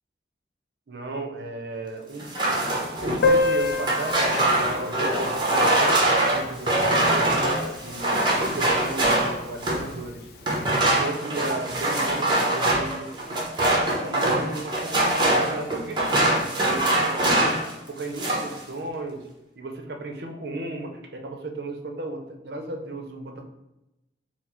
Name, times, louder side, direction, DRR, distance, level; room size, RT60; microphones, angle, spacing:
voice 1, 0.9-2.3 3.0-7.3 7.8-10.3 10.8-13.1 14.0-17.6 17.9-19.3 19.6-23.4, right 2 dB, 65° right, 4 dB, 0.6 m, -35 dB
sound 1, 2.2-9.9 10.4-17.7 18.0-18.6, right 1 dB, 25° right, 0.8 m, -23 dB
Piano, 3.2-8.6 8.8-8.9 9.2-9.3 9.6-9.7 10.5-10.7, left 3 dB, 60° left, 0.4 m, -28 dB
4.5 x 2.0 x 4.2 m, 0.92 s
head